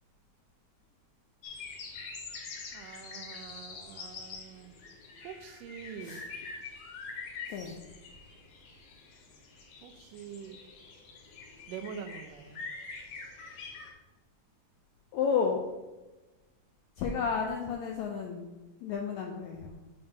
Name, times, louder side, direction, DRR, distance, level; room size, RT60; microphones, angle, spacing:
sound 1, 1.4-13.9, left 4 dB, 65° left, 1.6 m, -45 dB
voice 1, 2.7-4.7 5.2-6.3 7.5-7.8 9.8-10.6 11.7-12.6, right 7 dB, 80° right, 7 dB, 2.2 m, -45 dB
voice 2, 15.1-15.6 17.0-18.6 18.8-19.8, left 6 dB, 85° left, 1 dB, 1.6 m, -32 dB
6.8 x 5.3 x 3.6 m, 1.1 s
omnidirectional pair, 3.9 m